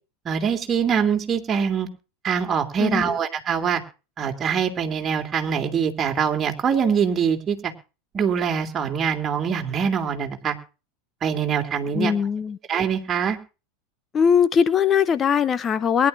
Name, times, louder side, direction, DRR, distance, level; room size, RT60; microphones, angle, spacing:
voice 1, 0.2-1.9 2.2-3.8 4.2-7.7 8.1-10.5 11.2-12.1 12.7-13.4, right 7 dB, 30° right, 3 dB, 3.1 m, -23 dB
voice 2, 2.8-3.2 11.9-12.6 14.1-16.1, left 7 dB, 30° left, 14 dB, 0.8 m, -20 dB
22.5 x 11.5 x 2.7 m, 0.32 s
hypercardioid pair, 90°, 0 cm